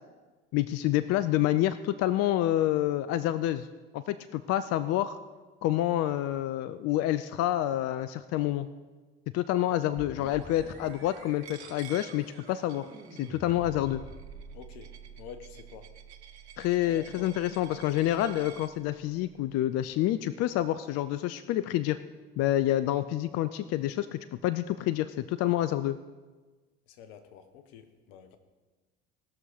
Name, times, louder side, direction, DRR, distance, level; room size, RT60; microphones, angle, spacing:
voice 1, 0.5-3.7 3.9-5.2 5.6-8.7 9.3-12.9 13.2-14.0 16.6-22.0 22.4-26.0, left 13 dB, 50° left, 14 dB, 0.5 m, -28 dB
sound 1, 10.0-19.5, right 4 dB, 35° right, 3.8 m, -49 dB
Coin (dropping), 11.4-18.7, right 9 dB, 85° right, 0.7 m, -51 dB
voice 2, 14.5-15.9 16.9-17.3 26.9-28.4, left 8 dB, 70° left, 9 dB, 1.2 m, -48 dB
19.0 x 6.4 x 5.1 m, 1.3 s
hypercardioid pair, 70°, 32 cm